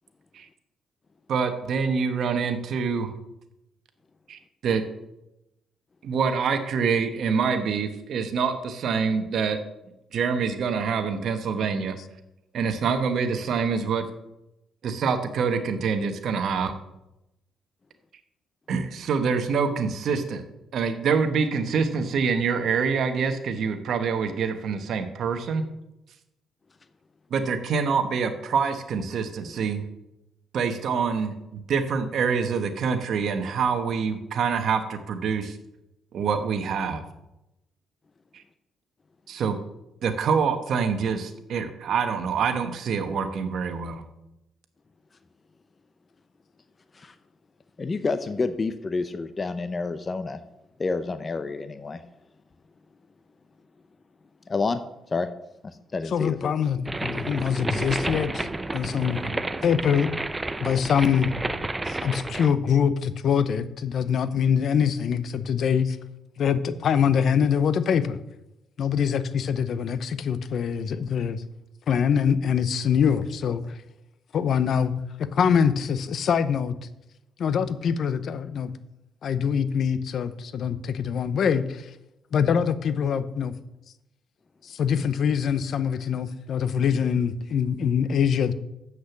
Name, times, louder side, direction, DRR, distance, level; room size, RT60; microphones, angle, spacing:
voice 1, 1.3-3.1 4.3-4.8 6.0-9.6 10.1-12.0 12.5-14.0 14.8-16.7 18.7-20.4 20.7-25.6 27.3-29.8 30.5-35.6 36.1-37.0 38.3-38.4 39.3-39.6 40.0-44.0, right 5 dB, 65° right, 7 dB, 1.3 m, -26 dB
voice 2, 47.8-50.4 50.8-52.0 54.5-54.8 55.1-55.3 55.6-56.5, left 3 dB, 30° left, 10 dB, 0.6 m, -29 dB
voice 3, 56.1-58.5 58.7-60.1 60.6-61.3 61.9-66.0 66.4-68.2 68.8-71.4 71.9-73.8 74.3-74.9 75.2-76.8 77.4-78.7 79.2-81.9 82.3-83.5 84.6-88.5, left 7 dB, 60° left, 13 dB, 0.7 m, -24 dB
sound 1, 56.9-62.5, right 2 dB, 15° right, 0.6 m, -31 dB
7.7 x 6.4 x 7.2 m, 0.88 s
cardioid pair, 90°, 0 cm